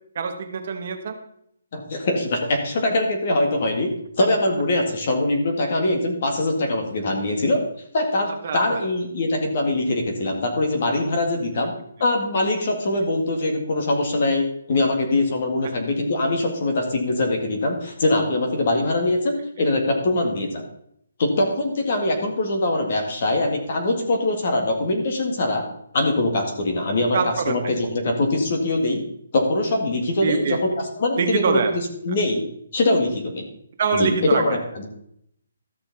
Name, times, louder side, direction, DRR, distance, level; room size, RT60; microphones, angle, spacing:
voice 1, 0.1-1.1 8.4-8.8 11.6-11.7 27.1-27.6 30.2-30.6 31.1-31.7 33.8-34.6, right 5 dB, 35° right, 5 dB, 1.0 m, -24 dB
voice 2, 1.7-3.9 4.2-7.6 7.9-11.7 12.0-20.6 21.2-25.7 25.9-27.2 27.5-29.0 29.3-31.6 32.0-32.4 32.7-33.5 34.0-34.9, left 2 dB, 35° left, 3 dB, 1.9 m, -22 dB
13.0 x 6.9 x 4.1 m, 0.72 s
hypercardioid pair, 175°, 0 cm